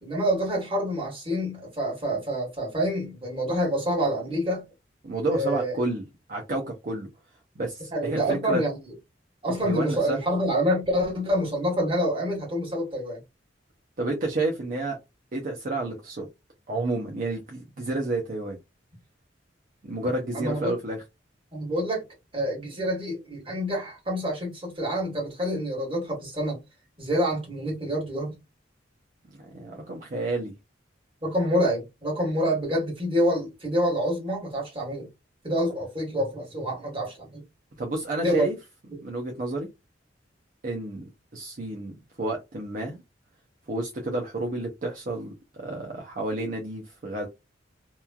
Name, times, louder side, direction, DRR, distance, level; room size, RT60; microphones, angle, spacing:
voice 1, 0.0-4.6 5.3-5.7 7.9-8.8 9.4-13.2 20.3-20.7 21.5-22.0 22.3-26.6 27.0-28.4 31.2-35.1 35.4-37.4 38.2-38.5, equal, 30° right, 1.6 m, -27 dB
voice 2, 5.0-6.0 6.3-7.1 7.6-8.6 9.6-10.2 14.0-15.0 15.3-16.3 16.7-18.6 19.8-21.0 29.4-30.5 37.8-38.6 39.0-39.7 40.6-43.0 43.7-45.3 45.6-47.3, right 2 dB, 45° right, 0.6 m, -30 dB
2.9 x 2.3 x 2.3 m
head